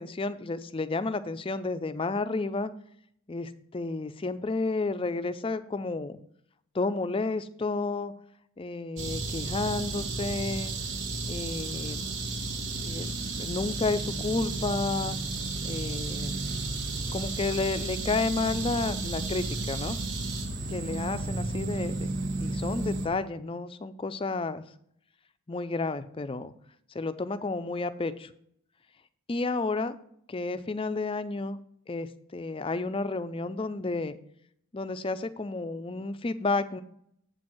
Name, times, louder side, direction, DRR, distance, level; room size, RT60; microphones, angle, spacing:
voice 1, 0.0-2.7 3.3-6.2 6.7-8.1 8.6-10.8 11.3-12.1 12.8-13.1 13.4-15.2 15.6-16.4 17.1-20.0 20.7-22.1 22.4-24.6 25.5-26.5 26.9-28.3 29.3-30.0 30.3-31.6 31.9-34.2 34.7-36.8, left 3 dB, 25° left, 11 dB, 0.4 m, -31 dB
sound 1, 9.0-23.1, right 3 dB, 55° right, 1.2 m, -33 dB
8.1 x 4.4 x 6.2 m, 0.69 s
head